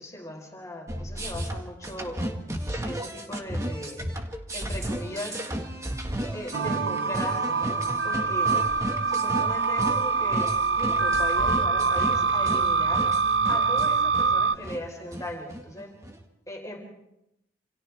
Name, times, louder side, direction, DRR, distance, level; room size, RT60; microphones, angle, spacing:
voice 1, 0.0-2.2 2.8-4.0 4.5-5.5 6.3-8.5 9.1-13.0 13.5-15.9 16.5-16.9, left 1 dB, 15° left, 0 dB, 4.4 m, -38 dB
sound 1, 0.9-16.2, right 1 dB, 15° right, 1.8 m, -34 dB
sound 2, 6.5-14.5, right 4 dB, 75° right, 0.7 m, -24 dB
28.5 x 28.0 x 3.6 m, 0.86 s
head